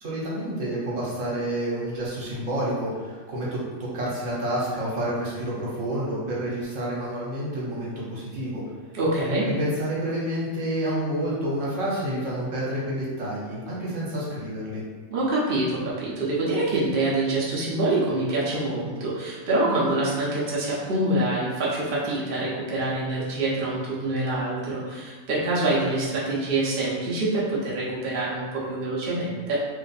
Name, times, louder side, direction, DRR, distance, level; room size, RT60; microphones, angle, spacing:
voice 1, 0.0-8.6 9.4-14.8, right 1 dB, 70° right, -6 dB, 1.4 m, -29 dB
voice 2, 8.9-9.5 15.1-29.6, right 2 dB, 50° right, -7 dB, 0.9 m, -25 dB
3.2 x 2.5 x 4.1 m, 1.4 s
omnidirectional pair, 1.4 m